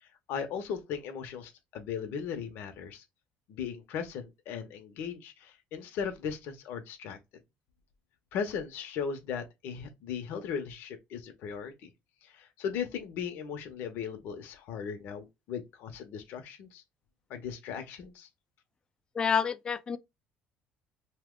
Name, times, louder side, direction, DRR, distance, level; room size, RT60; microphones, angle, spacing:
voice 1, 0.0-3.0 3.5-7.2 8.3-11.9 12.2-16.8 17.3-18.3, left 7 dB, 65° left, 0.7 m, -37 dB
voice 2, 19.1-20.0, left 7 dB, 20° left, 0.3 m, -28 dB
2.8 x 2.1 x 3.6 m
cardioid pair, 155°, 4 cm